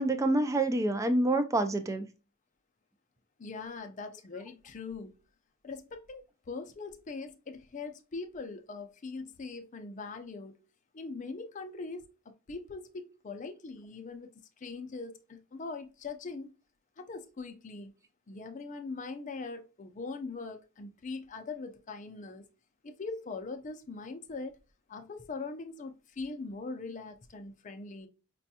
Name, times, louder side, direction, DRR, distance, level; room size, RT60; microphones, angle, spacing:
voice 1, 0.0-2.1, right 2 dB, 15° right, 0.4 m, -27 dB
voice 2, 3.4-5.1 5.6-10.6 10.9-16.5 17.0-17.9 18.3-22.5 22.8-24.6 24.9-28.1, left 4 dB, 40° left, 0.5 m, -41 dB
5.0 x 2.3 x 2.7 m
head